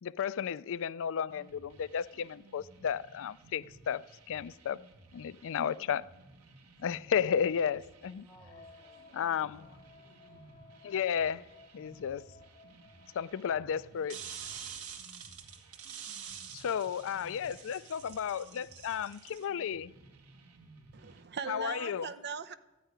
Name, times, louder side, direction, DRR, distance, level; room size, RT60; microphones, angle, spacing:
voice 1, 0.0-4.8 5.1-6.1 6.8-8.2 9.1-9.7 10.8-11.4 11.7-12.2 13.1-14.2 16.5-19.9 21.5-22.1, left 8 dB, 60° left, 0.4 m, -33 dB
sound 1, 1.3-21.2, right 2 dB, 90° right, 1.6 m, -58 dB
voice 2, 8.1-10.4, right 1 dB, 15° right, 7.2 m, -62 dB
sound 2, 8.4-14.2, left 4 dB, 20° left, 3.7 m, -58 dB
sound 3, 14.1-19.4, right 7 dB, 75° right, 1.6 m, -46 dB
voice 3, 20.9-22.5, right 6 dB, 50° right, 0.7 m, -40 dB
13.5 x 9.2 x 9.6 m
head